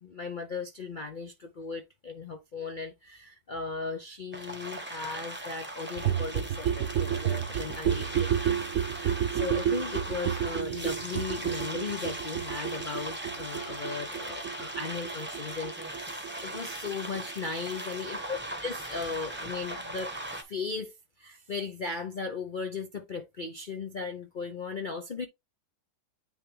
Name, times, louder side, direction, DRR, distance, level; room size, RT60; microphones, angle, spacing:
voice 1, 0.0-8.3 8.9-20.9 21.2-25.3, left 4 dB, 70° left, 0.4 m, -37 dB
sound 1, 4.3-20.4, right 1 dB, 10° right, 0.8 m, -39 dB
sound 2, 6.0-17.5 17.7-17.8 18.0-18.1 18.3-18.4 18.6-18.7 18.9-19.0 19.2-19.3, right 9 dB, 60° right, 1.0 m, -31 dB
9.2 x 3.3 x 3.2 m
omnidirectional pair, 1.9 m